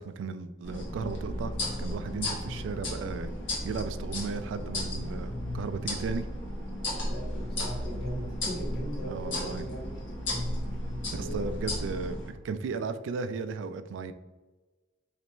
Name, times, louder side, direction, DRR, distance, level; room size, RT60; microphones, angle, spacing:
voice 1, 0.0-1.5 1.8-3.3 3.6-6.3 9.1-9.7 11.1-14.1, right 4 dB, 75° right, 11 dB, 0.3 m, -35 dB
sound 1, 0.6-12.3, left 1 dB, 75° left, 1.3 m, -34 dB
voice 2, 6.9-10.0 11.2-11.5, equal, 55° left, -4 dB, 1.3 m, -39 dB
3.2 x 3.0 x 4.3 m, 1.2 s
head